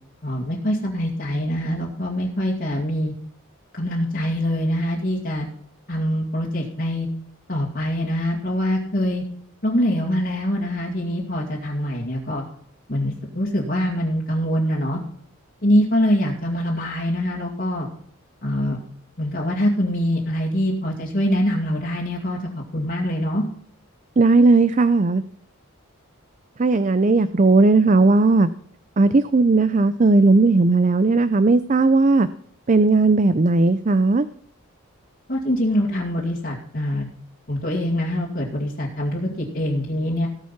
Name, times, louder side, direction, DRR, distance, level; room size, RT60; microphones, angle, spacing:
voice 1, 0.2-3.1 3.7-5.5 5.9-7.1 7.5-9.2 9.6-12.4 12.9-15.0 15.6-17.9 18.4-18.8 19.2-22.4 22.7-23.4 35.3-37.1 37.5-40.3, equal, 45° left, -5 dB, 2.3 m, -24 dB
voice 2, 24.2-25.2 26.6-28.5 29.0-32.3 32.7-34.3, right 3 dB, 35° right, 13 dB, 0.5 m, -16 dB
18.0 x 7.3 x 5.9 m, 0.65 s
head